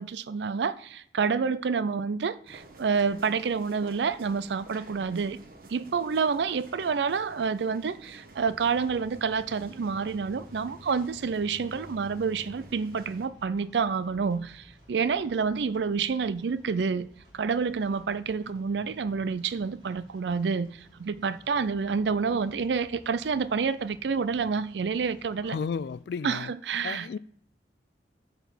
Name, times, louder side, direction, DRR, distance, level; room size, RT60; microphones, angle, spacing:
voice 1, 0.0-5.4 5.7-17.1 17.3-25.6 26.2-27.2, right 5 dB, 75° right, 0.4 m, -28 dB
sound 1, 2.5-13.3, right 1 dB, 55° right, 1.2 m, -49 dB
sound 2, 8.3-26.0, equal, 30° right, 3.3 m, -56 dB
voice 2, 25.4-26.5 26.8-27.2, left 5 dB, 65° left, 0.3 m, -33 dB
10.0 x 4.1 x 7.1 m
head